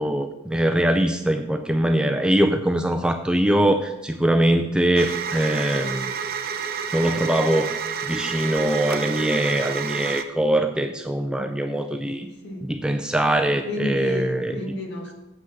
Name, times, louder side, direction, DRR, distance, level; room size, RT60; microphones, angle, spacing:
voice 1, 0.0-6.1 6.9-7.8 8.0-12.3 12.6-14.5, right 1 dB, 5° right, 5 dB, 0.3 m, -22 dB
sound 1, 5.0-10.2, right 6 dB, 45° right, 0.6 m, -29 dB
voice 2, 12.2-12.7 13.5-15.1, left 1 dB, 50° left, 1 dB, 1.8 m, -33 dB
7.9 x 6.0 x 5.9 m, 0.95 s
head